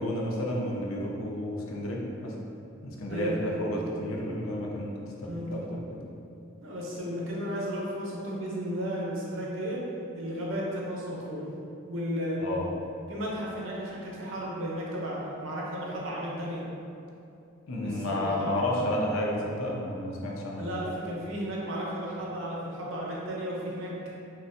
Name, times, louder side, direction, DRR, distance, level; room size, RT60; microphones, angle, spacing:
voice 1, 0.0-2.3 2.8-6.0 12.4-12.7 17.7-20.7, left 1 dB, 80° left, -2 dB, 0.5 m, -31 dB
voice 2, 5.3-5.6 6.6-9.8 10.2-11.4 11.9-12.4 13.1-16.6 17.8-18.8 20.6-24.1, equal, 65° right, -5 dB, 0.7 m, -34 dB
3.9 x 2.2 x 2.5 m, 2.7 s
head